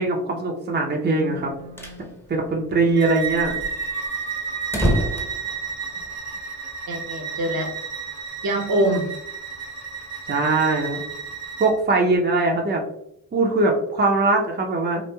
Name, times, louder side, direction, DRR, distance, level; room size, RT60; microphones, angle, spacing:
voice 1, 0.0-1.5 2.0-3.5 10.3-11.0 11.6-12.8 13.3-15.0, right 3 dB, 25° right, 0 dB, 0.6 m, -21 dB
voice 2, 1.2-2.1 6.9-7.7 8.4-9.1, right 1 dB, 55° right, 2 dB, 0.9 m, -25 dB
sound 1, 1.4-2.0 2.4-2.5 2.7-2.8 3.2-6.3, equal, 5° left, 0.8 m, -27 dB
Bowed string instrument, 3.0-11.8, right 6 dB, 90° right, 0.9 m, -32 dB
3.0 x 2.4 x 2.2 m, 0.76 s
supercardioid pair, 45°, 44 cm